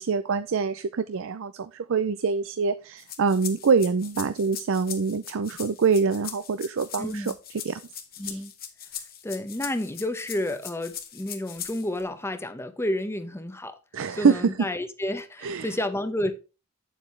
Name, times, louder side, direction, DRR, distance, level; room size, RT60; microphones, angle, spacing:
voice 1, 0.0-7.3 7.6-7.8 8.2-8.4 13.9-14.7 15.4-15.7, right 5 dB, 60° right, 0.5 m, -25 dB
sound 1, 3.0-12.0, left 9 dB, 40° left, 1.4 m, -40 dB
voice 2, 7.0-7.3 8.2-8.5 9.2-13.8 14.1-16.3, left 1 dB, 10° left, 0.8 m, -30 dB
9.0 x 7.4 x 3.3 m
head